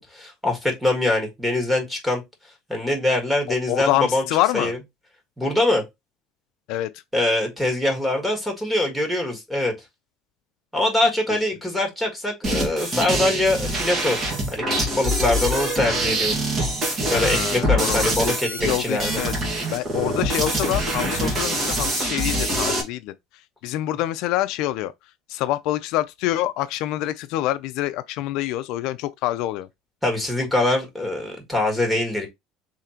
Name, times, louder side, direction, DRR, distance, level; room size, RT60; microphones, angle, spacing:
voice 1, 0.0-2.2 2.7-4.2 4.5-4.8 5.4-5.8 7.1-9.7 10.7-14.2 14.5-16.5 17.1-19.2 30.0-32.3, left 1 dB, 5° right, 1.7 m, -23 dB
voice 2, 3.7-4.7 6.7-6.9 17.1-19.3 19.7-23.1 23.6-24.9 25.3-29.7, left 14 dB, 65° left, 0.4 m, -26 dB
sound 1, 12.4-22.8, right 1 dB, 30° right, 1.6 m, -24 dB
3.7 x 3.2 x 4.3 m
cardioid pair, 150°, 0 cm